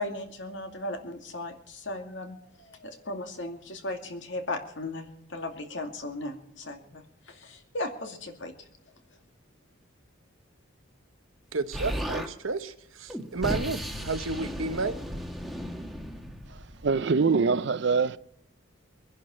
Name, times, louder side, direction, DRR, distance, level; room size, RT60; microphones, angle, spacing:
voice 1, 0.0-8.7, left 2 dB, 65° left, 2.4 m, -37 dB
voice 2, 11.5-15.0, right 3 dB, 85° right, 1.1 m, -32 dB
Explosion, 11.7-12.3 13.1-17.0, equal, ahead, 1.4 m, -35 dB
voice 3, 16.8-18.2, right 4 dB, 60° right, 0.5 m, -23 dB
23.5 x 11.0 x 4.4 m
head